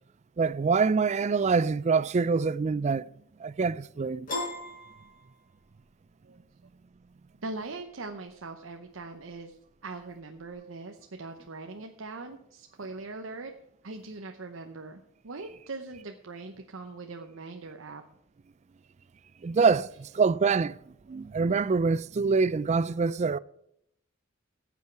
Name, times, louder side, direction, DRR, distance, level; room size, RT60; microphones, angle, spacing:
voice 1, 0.4-3.1 3.4-4.3 19.4-20.8 21.1-23.4, right 5 dB, 35° right, 0.4 m, -25 dB
Piano, 4.3-5.8, left 2 dB, 45° left, 5.0 m, -36 dB
voice 2, 7.4-13.5 13.8-18.0, right 3 dB, 90° right, 0.9 m, -41 dB
14.5 x 8.3 x 4.6 m
head